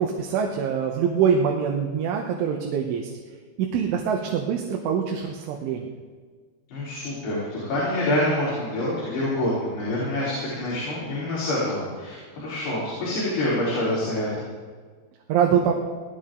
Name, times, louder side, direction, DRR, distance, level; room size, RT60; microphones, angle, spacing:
voice 1, 0.0-3.1 3.6-5.9 15.3-15.7, right 7 dB, 90° right, 1 dB, 3.6 m, -24 dB
voice 2, 6.7-14.3, left 1 dB, 65° left, -8 dB, 6.0 m, -26 dB
19.0 x 14.0 x 3.8 m, 1.6 s
omnidirectional pair, 5.3 m